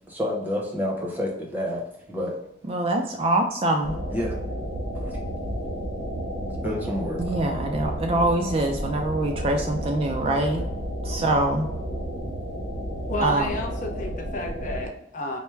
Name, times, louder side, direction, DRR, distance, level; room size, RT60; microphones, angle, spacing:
voice 1, 0.1-2.4 4.1-4.4 4.9-5.2 6.6-7.2, left 1 dB, 10° right, -2 dB, 0.8 m, -29 dB
voice 2, 2.7-4.0 7.2-10.6 11.0-11.7 13.2-13.5, right 1 dB, 30° right, 3 dB, 0.3 m, -24 dB
sound 1, 3.8-14.9, equal, 70° right, 0.8 m, -31 dB
voice 3, 13.1-15.4, left 1 dB, 40° left, 2 dB, 0.5 m, -31 dB
4.5 x 2.1 x 3.2 m, 0.83 s
head